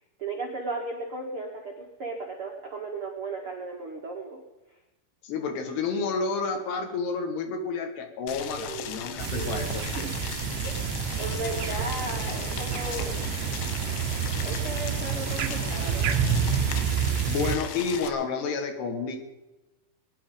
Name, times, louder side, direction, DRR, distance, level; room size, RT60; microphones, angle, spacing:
voice 1, 0.2-4.4 8.6-9.0 9.3-10.1 10.6-10.7 11.2-13.6 14.4-16.1, right 3 dB, 45° right, -1 dB, 1.8 m, -36 dB
voice 2, 5.2-9.8 16.8-19.2, left 4 dB, 65° left, 5 dB, 3.8 m, -30 dB
Boiling, 8.3-18.1, left 9 dB, 90° left, 3.6 m, -37 dB
sound 1, 9.2-17.6, right 8 dB, 75° right, 2.9 m, -29 dB
sound 2, 11.2-16.6, equal, ahead, 6.9 m, -43 dB
22.0 x 10.5 x 5.4 m, 1.0 s
omnidirectional pair, 5.3 m